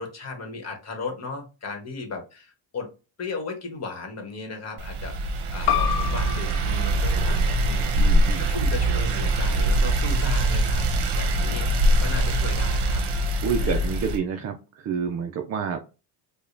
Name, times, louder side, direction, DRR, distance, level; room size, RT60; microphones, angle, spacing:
voice 1, 0.0-2.9 3.2-8.2 8.5-10.9 11.1-11.7 12.0-13.0 13.6-13.8, left 4 dB, 35° left, 3 dB, 1.2 m, -36 dB
sound 1, 4.8-14.2, right 1 dB, 60° right, 0.8 m, -23 dB
sound 2, 5.7-10.8, left 9 dB, 65° left, 0.5 m, -32 dB
voice 2, 8.0-8.5 13.4-15.8, right 6 dB, 35° right, 4 dB, 0.4 m, -28 dB
4.8 x 2.2 x 2.6 m, 0.31 s
cardioid pair, 140°, 46 cm